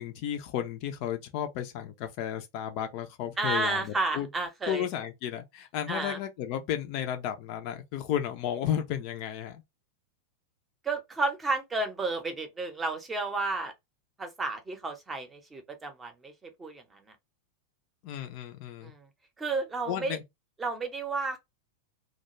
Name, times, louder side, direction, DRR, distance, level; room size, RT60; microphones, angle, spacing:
voice 1, 0.0-4.3 4.7-9.6 18.0-18.9 19.8-20.2, left 10 dB, 45° left, 0.4 m, -33 dB
voice 2, 3.4-4.8 5.9-6.2 10.8-13.7 14.2-17.2 18.8-19.1 19.4-20.2 20.6-21.4, right 3 dB, 15° right, 0.7 m, -32 dB
2.2 x 2.2 x 3.0 m
figure-of-eight pair, 90°, 0 cm